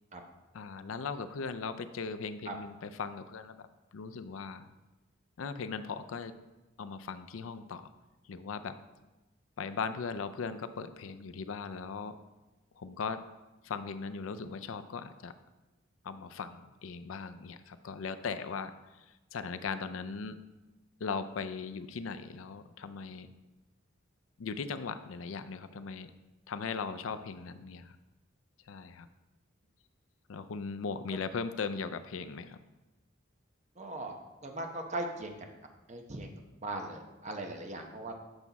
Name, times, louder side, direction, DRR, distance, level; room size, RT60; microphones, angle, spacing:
voice 1, 0.5-3.7 3.9-4.7 5.4-6.3 6.8-7.9 8.3-8.8 9.6-12.2 12.8-13.2 13.6-15.3 16.0-20.4 21.0-23.3 24.4-26.1 26.5-28.0 28.7-29.1 30.3-32.6, left 5 dB, 85° left, 11 dB, 0.5 m, -38 dB
voice 2, 33.8-34.2 34.4-35.3 35.9-36.3 36.6-38.1, right 2 dB, 35° right, 3 dB, 0.9 m, -39 dB
8.0 x 5.9 x 4.1 m, 1.1 s
head